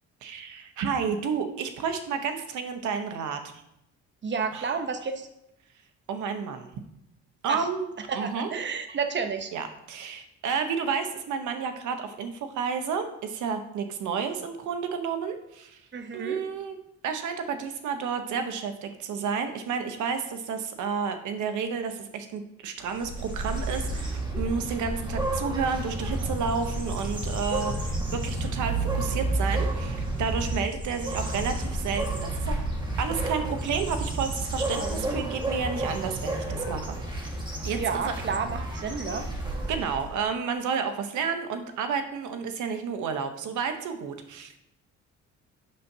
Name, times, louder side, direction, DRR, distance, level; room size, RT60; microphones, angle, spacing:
voice 1, 0.2-3.4 4.5-4.7 6.1-6.7 7.4-7.9 8.1-8.5 9.5-15.8 16.1-16.8 17.0-32.5 33.0-36.9 37.6-38.1 39.7-44.6, right 6 dB, 75° right, 7 dB, 0.9 m, -31 dB
voice 2, 4.2-5.3 7.5-7.6 8.1-9.5 15.9-16.4 37.7-39.2, right 5 dB, 40° right, 7 dB, 0.9 m, -30 dB
sound 1, 22.8-40.1, right 2 dB, 15° right, 1.7 m, -31 dB
8.4 x 5.8 x 2.7 m, 0.83 s
cardioid pair, 90°, 30 cm